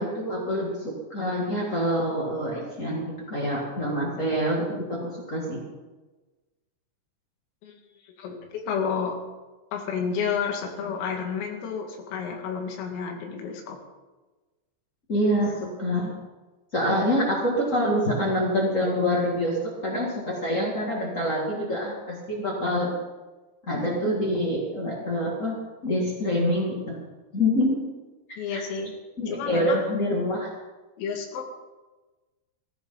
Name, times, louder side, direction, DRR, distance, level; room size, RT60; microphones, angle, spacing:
voice 1, 0.0-5.6 15.1-16.1 16.7-22.9 23.7-25.6 25.8-27.0 27.3-27.8 28.5-28.6 29.2-30.5, equal, 55° left, -3 dB, 0.8 m, -26 dB
voice 2, 8.0-9.2 9.7-13.8 28.4-28.9 29.3-29.8 31.0-31.5, left 6 dB, 80° left, 2 dB, 4.8 m, -31 dB
19.5 x 15.0 x 4.0 m, 1.2 s
omnidirectional pair, 6.0 m